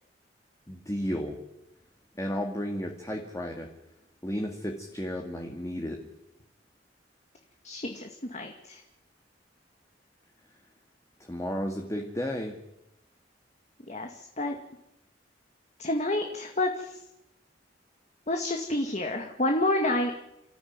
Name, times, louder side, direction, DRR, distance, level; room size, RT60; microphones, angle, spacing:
voice 1, 0.7-1.4 2.1-3.7 4.2-6.0 11.2-12.6, equal, 20° left, 2 dB, 2.3 m, -33 dB
voice 2, 7.6-8.8 13.9-14.6 15.8-17.0 18.3-20.1, left 1 dB, 40° left, 3 dB, 2.2 m, -29 dB
29.0 x 14.0 x 9.6 m, 0.87 s
head